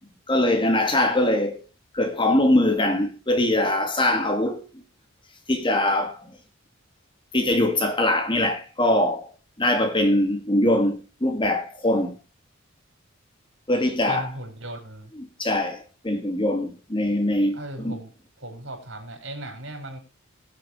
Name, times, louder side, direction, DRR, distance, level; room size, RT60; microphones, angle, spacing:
voice 1, 0.3-1.6 1.9-4.7 5.5-6.3 7.3-9.3 9.6-12.1 13.7-14.3 15.4-18.0, left 1 dB, 25° left, 1.9 m, -22 dB
voice 2, 14.1-15.1 17.5-18.1 18.4-20.0, right 1 dB, 65° right, 5.1 m, -37 dB
22.0 x 7.6 x 3.1 m
head